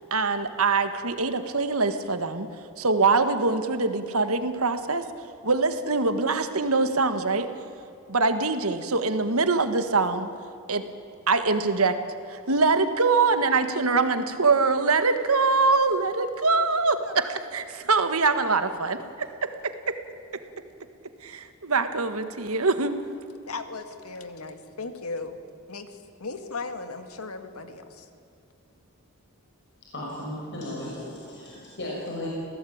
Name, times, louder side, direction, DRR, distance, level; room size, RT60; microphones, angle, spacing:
voice 1, 0.1-2.5 2.8-5.0 5.4-7.5 8.1-10.3 10.7-10.8 11.3-12.0 12.3-19.7 21.2-22.9, right 3 dB, 75° right, 9 dB, 1.7 m, -23 dB
voice 2, 23.5-25.4 25.7-28.1, left 3 dB, 80° left, 8 dB, 2.0 m, -37 dB
voice 3, 29.9-32.3, left 1 dB, 55° left, -4 dB, 6.1 m, -35 dB
27.0 x 17.5 x 8.8 m, 2.7 s
head